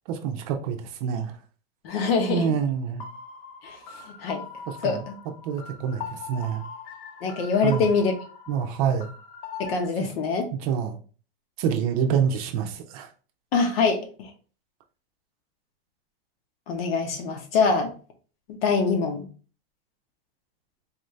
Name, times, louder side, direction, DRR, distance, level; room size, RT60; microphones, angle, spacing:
voice 1, 0.1-1.4 2.3-3.0 4.8-5.0 5.4-6.6 7.6-7.9 8.5-9.1 10.0-10.1 10.5-11.0 11.6-13.1, right 7 dB, 40° right, 4 dB, 0.6 m, -27 dB
voice 2, 1.8-2.5 3.6-4.4 4.8-5.2 7.2-8.1 9.6-10.5 13.5-14.3 16.7-17.9 18.6-19.3, left 4 dB, 80° left, 4 dB, 1.2 m, -24 dB
sound 1, 3.0-9.9, left 5 dB, 60° left, 1.0 m, -41 dB
4.2 x 2.7 x 3.2 m, 0.37 s
supercardioid pair, 165°, 30 cm